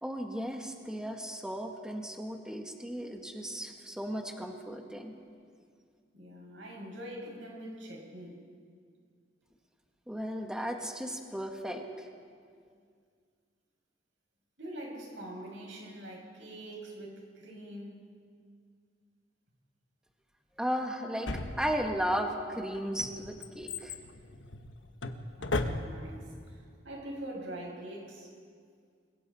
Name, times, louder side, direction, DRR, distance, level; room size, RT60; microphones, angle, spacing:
voice 1, 0.0-5.1 10.1-12.1 20.6-21.3 21.6-23.9, equal, 5° right, 2 dB, 1.6 m, -35 dB
voice 2, 6.1-8.4 14.6-18.1 25.4-28.3, right 1 dB, 80° right, -2 dB, 6.6 m, -44 dB
Drawer open or close, 21.3-22.1 22.7-26.2 26.5-26.6, left 2 dB, 85° left, 1.2 m, -36 dB
29.5 x 22.0 x 4.3 m, 2.2 s
head